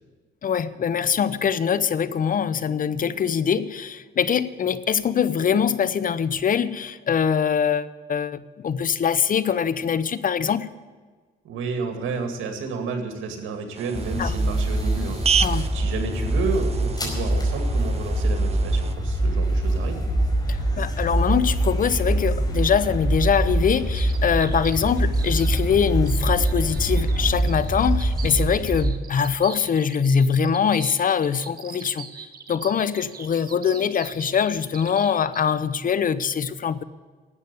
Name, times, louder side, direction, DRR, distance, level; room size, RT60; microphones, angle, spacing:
voice 1, 0.4-10.7 14.2-14.3 15.4-15.7 20.5-36.8, left 7 dB, 45° left, 16 dB, 0.7 m, -23 dB
voice 2, 11.4-20.1, right 4 dB, 85° right, 4 dB, 2.2 m, -31 dB
sound 1, 13.7-19.0, right 7 dB, 30° right, 0.5 m, -31 dB
sound 2, 13.9-28.8, right 1 dB, 20° left, 4.8 m, -24 dB
sound 3, 23.7-35.6, right 7 dB, 50° right, 1.2 m, -42 dB
12.5 x 8.3 x 9.7 m, 1.4 s
cardioid pair, 90°, 20 cm